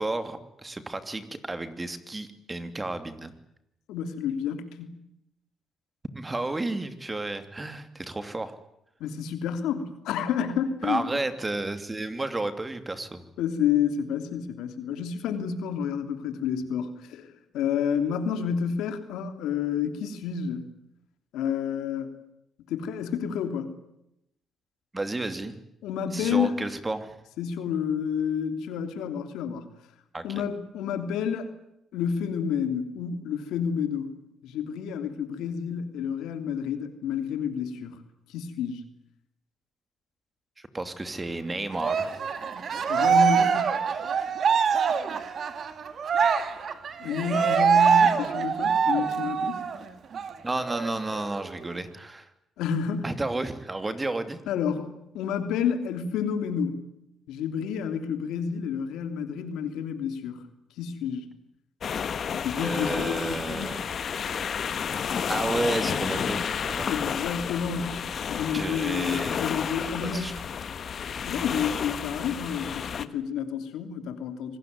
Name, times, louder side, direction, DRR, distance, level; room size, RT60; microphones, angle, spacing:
voice 1, 0.0-3.3 6.1-8.5 10.8-13.2 24.9-25.5 26.1-27.2 30.1-30.5 40.6-42.2 50.4-52.3 53.0-54.4 62.6-63.8 65.3-67.0 68.5-69.4 70.0-70.3, right 2 dB, 20° right, 10 dB, 2.7 m, -32 dB
voice 2, 3.9-4.9 9.0-11.0 13.4-17.3 17.5-20.7 21.3-22.2 22.7-23.7 25.8-26.6 27.4-29.7 30.2-31.5 31.9-34.2 34.4-38.0 38.3-38.8 42.9-43.8 47.0-49.6 52.6-53.0 54.5-56.8 57.3-60.5 60.8-61.3 62.3-63.8 66.9-68.0 68.3-70.3 71.3-74.6, left 7 dB, 90° left, 8 dB, 3.0 m, -30 dB
Cheering, 41.8-49.8 50.1-50.3 50.7-51.7, right 6 dB, 55° right, 2.3 m, -24 dB
sound 1, 61.8-73.0, left 7 dB, 55° left, 1.4 m, -31 dB
26.0 x 19.0 x 9.6 m, 0.83 s
cardioid pair, 90°, 0 cm